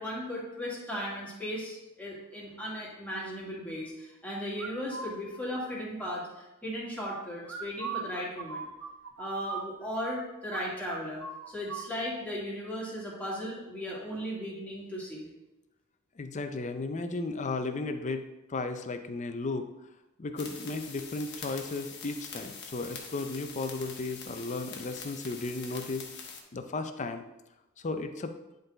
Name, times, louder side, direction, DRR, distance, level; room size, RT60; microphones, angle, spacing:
voice 1, 0.0-8.7 9.2-15.3, equal, 5° left, -5 dB, 2.0 m, -36 dB
sound 1, 4.6-5.2 7.4-10.2 10.5-10.6 10.9-11.9, right 5 dB, 70° right, 0.9 m, -39 dB
voice 2, 16.2-18.2 18.5-19.6 20.2-26.0 26.5-27.2 27.8-28.4, left 3 dB, 35° left, 8 dB, 0.5 m, -34 dB
sound 2, 20.4-26.4, left 5 dB, 55° left, 1.1 m, -44 dB
10.5 x 3.9 x 3.9 m, 0.96 s
head